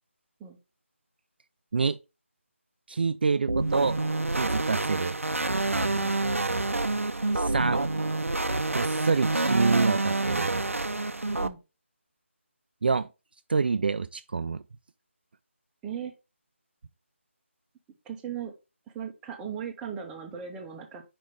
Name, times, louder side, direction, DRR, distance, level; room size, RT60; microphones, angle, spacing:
voice 1, 2.9-4.0 4.3-5.2 5.7-6.0 7.3-7.8 8.7-10.5 12.8-13.1 13.5-14.6, right 4 dB, 45° right, 0.4 m, -27 dB
sound 1, 3.5-11.5, right 2 dB, 90° right, 0.7 m, -27 dB
voice 2, 15.8-16.1 18.0-18.5 18.9-21.0, right 8 dB, 10° right, 0.7 m, -37 dB
5.1 x 5.1 x 5.0 m
figure-of-eight pair, 160°, 7 cm